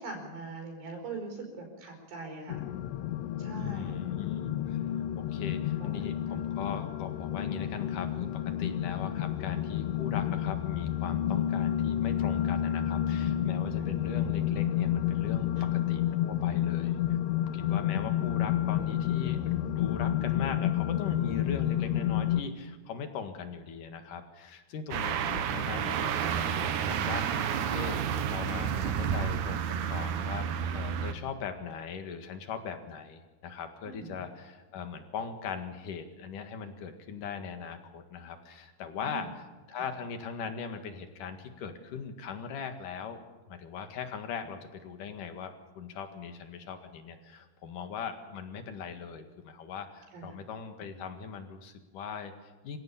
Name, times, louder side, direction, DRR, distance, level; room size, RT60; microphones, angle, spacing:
voice 1, 0.0-2.6 3.4-4.1 5.4-6.4 13.8-13.9 15.6-15.7 17.7-18.1 33.8-34.2 38.9-39.3 50.1-50.4, right 3 dB, 85° right, 2 dB, 6.9 m, -43 dB
sound 1, 2.5-22.4, left 11 dB, 90° left, 3.0 m, -30 dB
voice 2, 3.6-4.9 5.2-19.4 19.8-30.5 30.7-43.2 43.5-52.8, left 6 dB, 55° left, 7 dB, 3.1 m, -40 dB
sound 2, 24.9-31.1, right 8 dB, 65° right, 2.1 m, -30 dB
26.5 x 16.0 x 8.6 m, 1.2 s
omnidirectional pair, 4.8 m